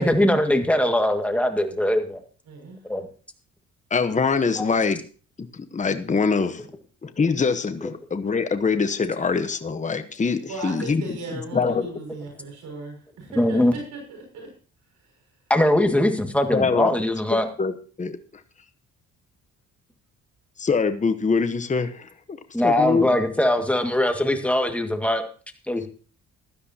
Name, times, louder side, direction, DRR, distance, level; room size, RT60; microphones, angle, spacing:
voice 1, 0.0-2.2 2.8-3.1 11.6-11.7 13.4-13.7 15.5-17.5 22.5-25.2 25.7-25.9, left 1 dB, 5° left, 5 dB, 1.9 m, -21 dB
voice 2, 2.5-2.8 10.5-14.5 14.9-15.2, right 2 dB, 75° right, 1 dB, 6.2 m, -37 dB
voice 3, 3.9-5.0 5.7-6.7 7.0-11.0 11.5-11.9 16.5-16.9 17.3-17.7 18.0-18.2 20.6-22.4 22.6-23.1, left 5 dB, 25° left, 9 dB, 1.1 m, -23 dB
16.0 x 12.0 x 2.9 m, 0.39 s
cardioid pair, 90°, 30 cm